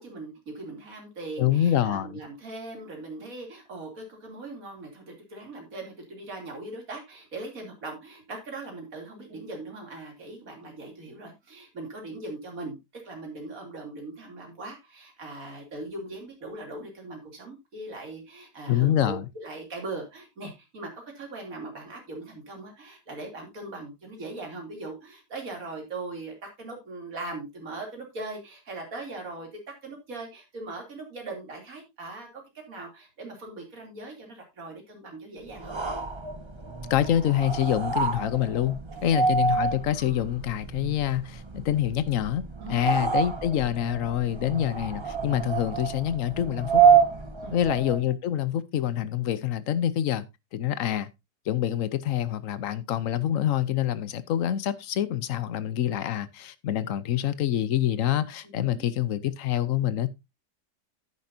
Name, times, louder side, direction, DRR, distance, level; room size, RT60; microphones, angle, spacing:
voice 1, 0.0-29.5 29.8-32.4 32.7-35.8 38.9-39.3 42.6-43.0 47.4-47.8 58.4-58.9, right 2 dB, 50° right, 3.5 m, -40 dB
voice 2, 1.4-2.2 18.7-19.2 36.9-42.4 42.7-46.8 47.5-50.2 50.5-51.1 51.5-60.1, left 11 dB, 60° left, 1.0 m, -26 dB
sound 1, 35.5-48.1, right 6 dB, 25° right, 0.7 m, -27 dB
11.0 x 9.7 x 2.7 m
omnidirectional pair, 1.9 m